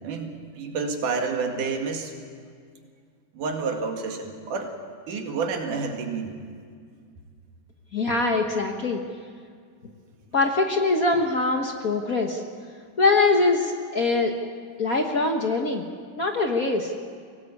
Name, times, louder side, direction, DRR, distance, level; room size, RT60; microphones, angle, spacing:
voice 1, 0.0-2.1 3.4-4.7 5.1-6.3, right 4 dB, 85° right, 3 dB, 3.6 m, -29 dB
voice 2, 7.9-9.0 10.3-12.4 13.0-14.3 14.8-15.8 16.2-16.9, left 3 dB, 55° left, 3 dB, 1.0 m, -23 dB
23.0 x 18.0 x 8.5 m, 2.1 s
omnidirectional pair, 3.6 m